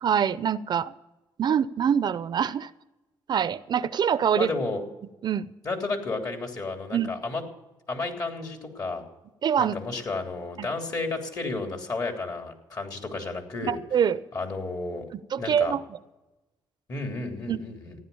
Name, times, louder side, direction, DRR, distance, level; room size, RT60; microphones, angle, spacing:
voice 1, 0.0-0.9 1.4-2.7 3.3-4.5 5.2-5.5 6.9-7.1 9.4-9.7 10.6-10.7 13.6-14.2 15.1-15.8 17.5-17.6, right 8 dB, 55° right, 16 dB, 0.6 m, -25 dB
voice 2, 4.4-4.8 5.6-7.4 7.9-9.0 9.6-13.8 14.3-15.0 15.4-15.7 16.9-18.0, left 3 dB, 45° left, 3 dB, 3.4 m, -32 dB
15.5 x 10.5 x 7.1 m, 1.0 s
cardioid pair, 80°, 9 cm